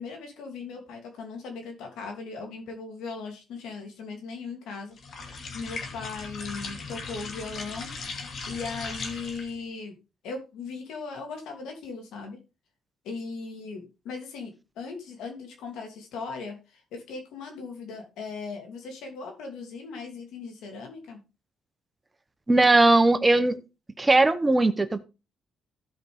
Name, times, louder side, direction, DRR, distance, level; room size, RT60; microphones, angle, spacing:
voice 1, 0.0-8.2 8.5-10.0 10.2-12.4 13.0-21.2, left 4 dB, 85° left, 2.7 m, -38 dB
sound 1, 5.0-9.6, left 4 dB, 60° left, 2.3 m, -38 dB
voice 2, 22.5-23.6 24.0-25.0, right 2 dB, 20° right, 1.0 m, -19 dB
15.0 x 5.3 x 3.5 m
cardioid pair, 90°, 0 cm